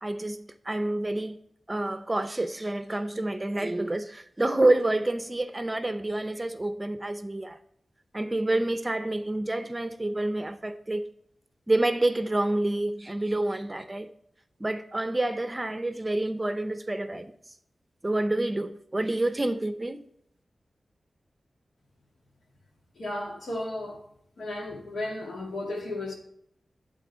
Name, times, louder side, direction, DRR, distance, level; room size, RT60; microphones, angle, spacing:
voice 1, 0.0-1.4 1.7-7.6 8.1-11.0 11.7-14.1 14.6-17.3 18.0-20.0, right 2 dB, 20° right, 0.6 m, -28 dB
voice 2, 23.0-24.0 24.4-26.2, left 1 dB, 80° left, 2.2 m, -34 dB
11.0 x 3.8 x 5.5 m
wide cardioid pair, 105°, 0 cm